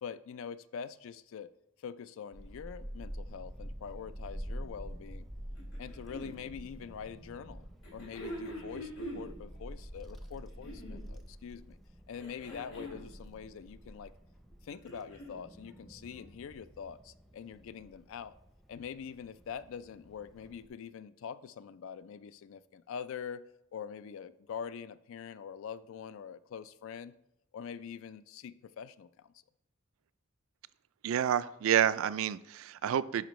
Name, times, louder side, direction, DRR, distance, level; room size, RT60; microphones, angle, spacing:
voice 1, 0.0-1.5 1.8-5.3 5.8-7.7 7.9-11.8 12.1-14.1 14.6-18.3 18.7-23.4 23.7-27.1 27.5-29.3, left 7 dB, 65° left, 0.3 m, -44 dB
Child speech kid speaking / Wind, 2.3-20.7, equal, ahead, 0.6 m, -48 dB
sound 1, 5.6-6.4 7.8-9.3 10.3-11.1 12.1-13.1 14.5-15.4 16.6-16.7, equal, 90° left, 2.7 m, -44 dB
voice 2, 31.0-33.3, right 9 dB, 70° right, 0.3 m, -29 dB
10.5 x 5.1 x 3.1 m
head